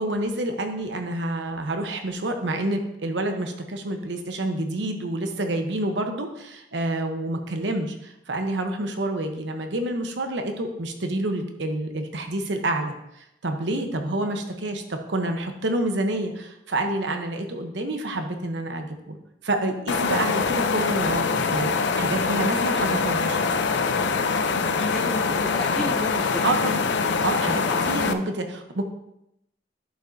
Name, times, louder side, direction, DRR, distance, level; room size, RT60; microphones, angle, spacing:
voice 1, 0.0-19.2 19.4-23.5 26.4-26.8 27.2-28.8, right 1 dB, 80° right, 5 dB, 0.9 m, -28 dB
sound 1, 19.9-28.1, left 4 dB, 75° left, 0.5 m, -24 dB
voice 2, 24.7-26.5 27.7-27.9, equal, 5° left, -3 dB, 0.5 m, -33 dB
11.0 x 5.3 x 2.6 m, 0.83 s
head